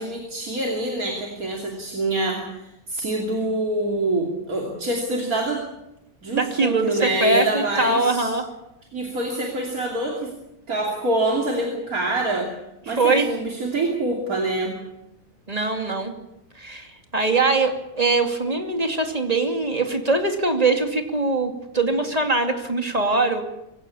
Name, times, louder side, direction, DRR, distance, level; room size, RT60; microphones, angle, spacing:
voice 1, 0.0-5.7 6.2-8.3 8.9-10.3 10.7-12.5 12.9-14.7, right 2 dB, 70° right, 0 dB, 3.4 m, -25 dB
voice 2, 6.3-8.5 13.0-13.3 15.5-16.1 16.6-16.9 17.1-23.4, right 3 dB, 25° right, 4 dB, 2.7 m, -22 dB
24.0 x 16.5 x 8.7 m, 0.89 s
omnidirectional pair, 1.6 m